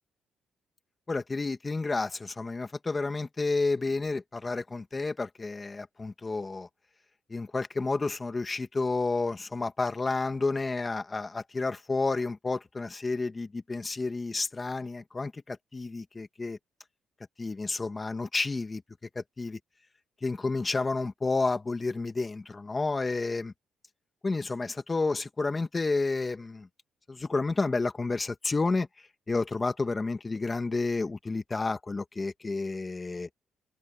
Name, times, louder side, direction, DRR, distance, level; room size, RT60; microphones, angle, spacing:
voice 1, 1.1-6.7 7.3-16.6 17.4-18.8 19.2-19.6 20.2-23.5 24.2-26.7 27.1-28.9 29.3-33.3, left 3 dB, 25° left, 2.1 m, -30 dB
cardioid pair, 90°, 0 cm